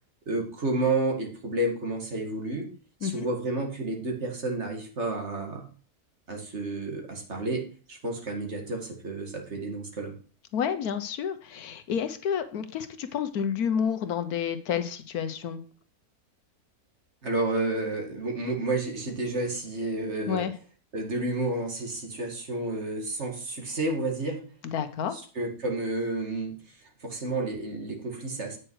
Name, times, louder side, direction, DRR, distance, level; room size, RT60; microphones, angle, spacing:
voice 1, 0.3-2.7 3.0-5.7 6.3-10.2 17.2-20.5 20.9-24.4 25.1-26.6 27.0-28.6, right 2 dB, 45° right, 1 dB, 2.2 m, -30 dB
voice 2, 10.5-15.6 20.3-20.5 24.6-25.2, left 8 dB, 75° left, 10 dB, 1.3 m, -30 dB
8.8 x 6.4 x 4.7 m, 0.40 s
omnidirectional pair, 1.6 m